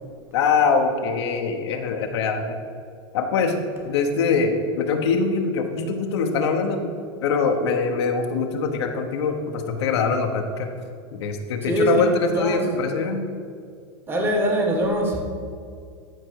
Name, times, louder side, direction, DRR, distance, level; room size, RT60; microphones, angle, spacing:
voice 1, 0.3-2.6 3.1-3.6 3.8-6.8 7.2-10.7 11.1-13.2, left 5 dB, 85° left, 3 dB, 1.2 m, -23 dB
voice 2, 12.3-12.7 14.1-15.2, right 1 dB, 15° right, 1 dB, 1.7 m, -22 dB
14.0 x 5.0 x 4.8 m, 2.2 s
supercardioid pair, 140°, 14 cm